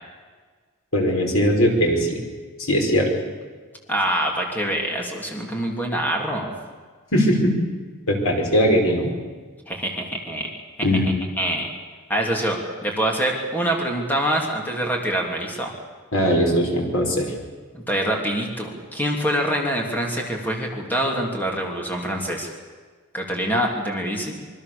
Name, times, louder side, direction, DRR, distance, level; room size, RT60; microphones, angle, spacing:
voice 1, 0.9-2.2 2.6-3.1 7.1-7.5 8.1-9.1 10.8-11.1 16.1-17.3, equal, 75° left, 1 dB, 5.5 m, -20 dB
voice 2, 3.9-6.5 9.7-10.5 10.8-11.7 12.1-15.7 17.7-22.5 23.1-24.4, right 1 dB, 10° left, 0 dB, 3.1 m, -25 dB
26.0 x 24.0 x 7.0 m, 1.5 s
head